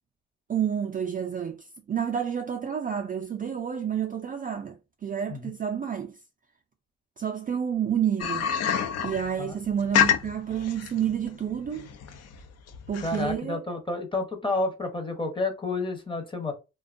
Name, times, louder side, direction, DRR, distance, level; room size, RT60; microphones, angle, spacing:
voice 1, 0.5-6.1 7.2-8.5 9.0-11.9 12.9-13.6, right 8 dB, 30° right, 0.4 m, -29 dB
sound 1, 8.2-13.3, left 9 dB, 55° left, 0.5 m, -27 dB
voice 2, 13.0-16.5, left 3 dB, 15° left, 0.8 m, -30 dB
2.5 x 2.2 x 2.5 m
cardioid pair, 90°, 30 cm